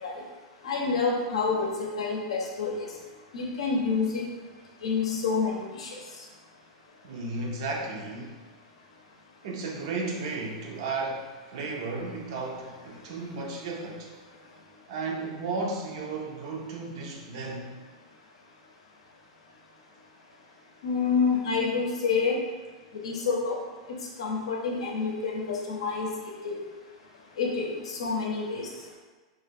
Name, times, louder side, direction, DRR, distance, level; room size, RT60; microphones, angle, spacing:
voice 1, 0.6-2.7 3.3-4.2 4.8-5.9 20.8-22.4 23.0-23.6 24.2-25.4 25.7-26.1 26.4-26.5 27.4-28.7, left 5 dB, 80° left, -2 dB, 0.6 m, -28 dB
voice 2, 7.0-8.4 9.4-14.1 14.9-17.7, right 3 dB, 65° right, 0 dB, 0.5 m, -34 dB
2.1 x 2.0 x 3.4 m, 1.3 s
hypercardioid pair, 110°, 3 cm